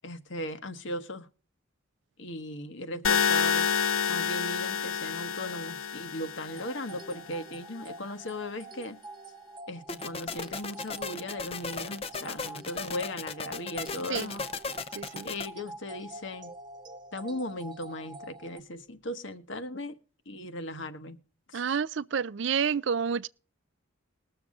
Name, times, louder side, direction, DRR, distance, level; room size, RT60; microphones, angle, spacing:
voice 1, 0.0-1.3 2.2-3.7 4.1-9.0 9.7-14.4 15.2-16.5 17.1-19.9 20.3-21.2 21.5-21.6, left 1 dB, 65° left, 1.2 m, -37 dB
sound 1, 3.0-7.1, left 7 dB, 80° left, 0.9 m, -28 dB
sound 2, 6.5-18.6, right 2 dB, 20° right, 0.7 m, -47 dB
sound 3, 9.9-15.5, left 4 dB, 30° left, 0.6 m, -36 dB
voice 2, 14.9-15.3 21.5-23.3, right 6 dB, 60° right, 0.4 m, -29 dB
20.5 x 7.0 x 3.7 m
head